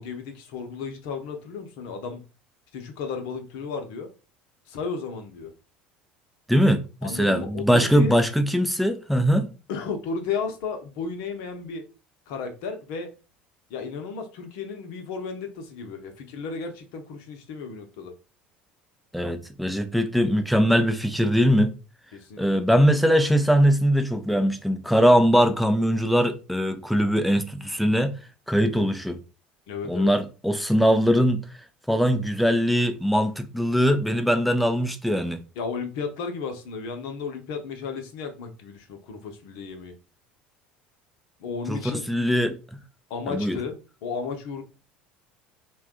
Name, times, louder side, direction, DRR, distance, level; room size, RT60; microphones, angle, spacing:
voice 1, 0.0-2.3 2.7-4.1 4.7-5.5 7.0-8.2 9.7-11.8 12.3-13.1 13.7-18.1 22.1-22.4 29.7-30.1 35.6-39.9 41.4-42.1 43.1-44.6, left 5 dB, 60° left, 0.7 m, -33 dB
voice 2, 6.5-9.5 19.1-21.7 22.4-28.2 28.5-29.2 29.9-31.5 31.9-35.4 41.7-42.6 43.3-43.6, equal, ahead, 0.5 m, -21 dB
2.6 x 2.3 x 3.6 m
figure-of-eight pair, 70°, 5 cm